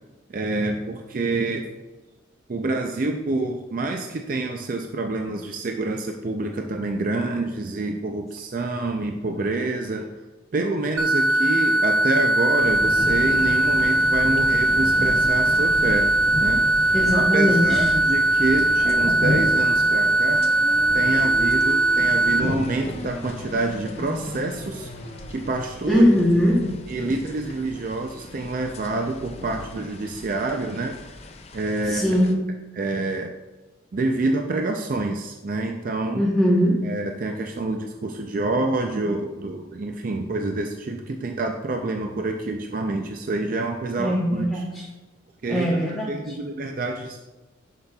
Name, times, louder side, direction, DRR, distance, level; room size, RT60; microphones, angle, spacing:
voice 1, 0.3-1.7 2.5-10.1 10.5-16.1 16.4-16.7 17.1-20.4 20.9-24.9 25.3-26.0 26.9-31.0 31.5-32.2 32.7-33.3 33.9-36.2 36.8-44.6 45.4-47.2, right 2 dB, 45° right, 3 dB, 0.4 m, -27 dB
sound 1, 11.0-22.4, right 1 dB, 85° right, 0.9 m, -20 dB
sound 2, 12.6-32.3, left 2 dB, 30° left, 0.4 m, -34 dB
voice 2, 16.9-17.8 25.9-26.7 31.8-32.4 36.1-36.9 44.0-44.8 45.5-46.1, equal, ahead, -5 dB, 0.8 m, -20 dB
sound 3, 19.5-25.5, equal, 50° left, 1.1 m, -38 dB
10.0 x 5.7 x 2.3 m, 1.2 s
head